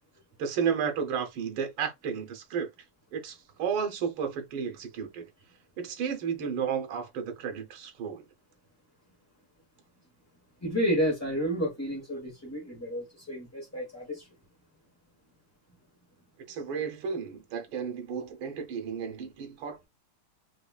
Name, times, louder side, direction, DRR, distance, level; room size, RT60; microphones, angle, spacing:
voice 1, 0.4-2.7 3.1-5.3 5.8-8.2 16.5-19.9, right 7 dB, 90° right, 1.6 m, -32 dB
voice 2, 10.6-14.3, equal, 15° left, 0.7 m, -30 dB
4.9 x 2.2 x 2.3 m
omnidirectional pair, 2.2 m